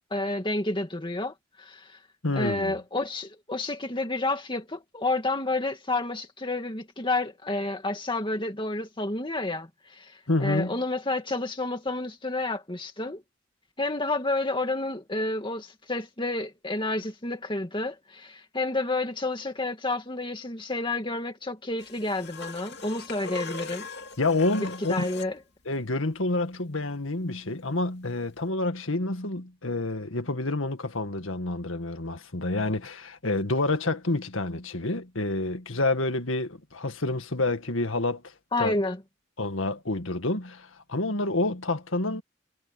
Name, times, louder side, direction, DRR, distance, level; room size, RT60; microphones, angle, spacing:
voice 1, 0.0-1.9 2.4-10.1 10.4-13.2 13.8-23.9 24.9-25.4 38.5-39.0, left 2 dB, 25° left, 2.3 m, -30 dB
voice 2, 2.2-2.8 10.3-10.8 24.2-25.1 25.7-38.8 39.4-42.2, left 2 dB, 80° left, 2.0 m, -28 dB
sound 1, 21.8-25.4 28.3-28.4, left 4 dB, 55° left, 2.7 m, -40 dB
head